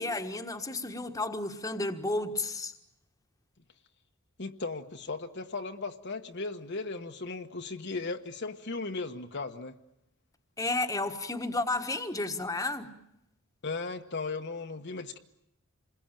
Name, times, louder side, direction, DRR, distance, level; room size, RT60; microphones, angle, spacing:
voice 1, 0.0-2.7 10.6-12.9, left 2 dB, 15° left, 1.5 m, -32 dB
voice 2, 4.4-9.8 13.6-15.2, left 3 dB, 55° left, 1.2 m, -36 dB
28.0 x 21.5 x 9.0 m
head